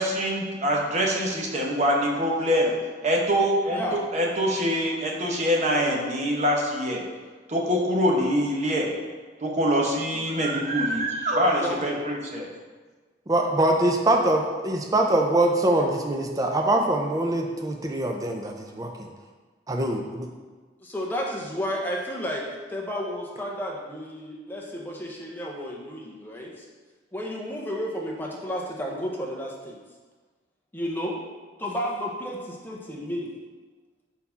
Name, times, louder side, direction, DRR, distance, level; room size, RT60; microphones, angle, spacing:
voice 1, 0.0-2.7 3.0-3.8 4.1-7.0 7.5-8.9 9.4-12.5, equal, 40° right, -1 dB, 0.9 m, -24 dB
voice 2, 3.7-4.0 11.4-12.0 20.8-26.7 27.1-29.8 30.7-31.2 31.6-33.3, equal, 10° left, -1 dB, 0.7 m, -32 dB
voice 3, 13.3-19.1 19.7-20.3, right 1 dB, 20° right, 2 dB, 0.4 m, -23 dB
4.3 x 4.1 x 5.7 m, 1.4 s
head